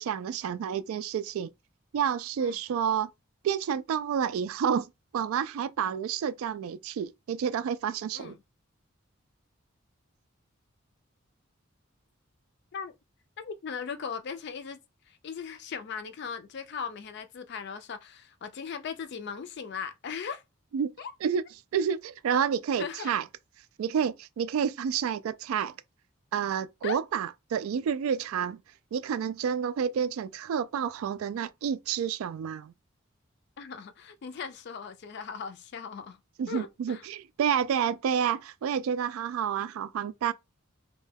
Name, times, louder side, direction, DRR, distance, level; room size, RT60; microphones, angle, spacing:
voice 1, 0.0-1.5 1.9-3.1 3.4-8.4 20.7-20.9 21.2-21.4 21.7-23.2 23.8-25.8 26.3-28.6 28.9-32.7 36.4-40.3, right 7 dB, 85° right, 0.3 m, -29 dB
voice 2, 13.4-20.4 21.0-21.1 22.8-23.1 26.8-27.0 33.6-36.2 36.5-37.1, left 6 dB, 55° left, 0.4 m, -38 dB
2.2 x 2.2 x 3.2 m
head